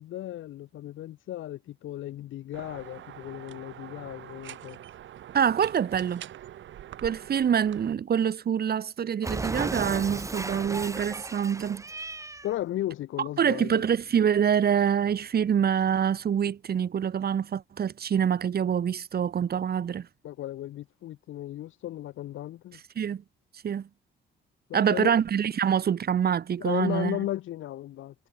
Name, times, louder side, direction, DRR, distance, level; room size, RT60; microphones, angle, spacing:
voice 1, 0.0-4.8 12.4-13.9 20.2-22.8 24.7-25.2 26.6-28.1, left 13 dB, 80° left, 3.8 m, -35 dB
sound 1, 2.5-7.9, right 11 dB, 70° right, 3.0 m, -44 dB
voice 2, 5.3-6.2 7.0-11.8 13.4-20.1 23.0-23.2 23.6-23.9 24.7-27.2, right 8 dB, 50° right, 2.1 m, -25 dB
Cat, 9.2-12.5, right 3 dB, 15° right, 1.1 m, -35 dB
cardioid pair, 90°, 20 cm